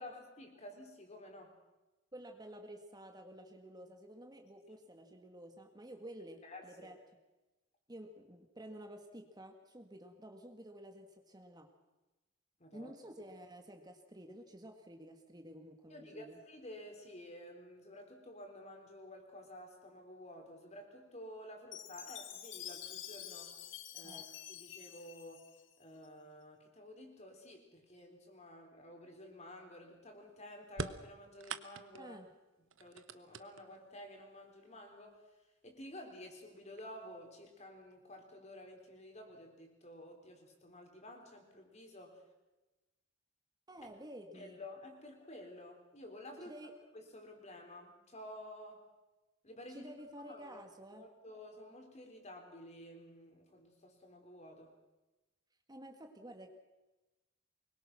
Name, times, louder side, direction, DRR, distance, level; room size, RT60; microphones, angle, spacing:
voice 1, 0.0-1.6 6.4-7.0 12.6-12.9 15.9-23.6 23.9-24.2 24.5-25.5 25.8-32.2 32.8-35.2 35.6-42.2 44.3-46.5 46.9-48.8 49.4-49.9 50.2-50.6 50.9-54.7, left 1 dB, 35° left, 3 dB, 4.1 m, -52 dB
voice 2, 2.1-7.0 7.9-11.7 12.7-16.4 24.0-24.2 32.0-32.3 43.7-44.6 46.4-46.7 49.7-51.0 55.7-56.5, right 1 dB, 20° right, 5 dB, 1.7 m, -51 dB
Chime, 21.7-26.1, left 11 dB, 70° left, 1.6 m, -48 dB
sound 1, 30.7-32.1 32.7-33.9 34.9-35.0 36.0-36.1 36.6-37.1, right 4 dB, 80° right, 1.1 m, -44 dB
24.0 x 22.0 x 6.2 m, 1.1 s
head